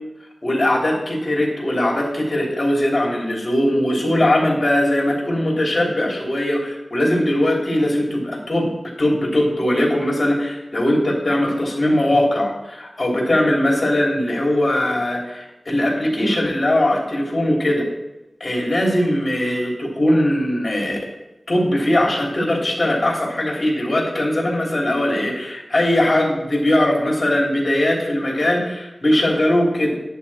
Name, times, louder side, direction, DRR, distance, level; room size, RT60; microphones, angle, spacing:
voice 1, 0.4-8.7 9.0-17.9 18.4-21.0 21.5-30.0, left 1 dB, 40° left, -1 dB, 3.3 m, -20 dB
10.5 x 9.8 x 4.3 m, 0.97 s
wide cardioid pair, 85°, 0 cm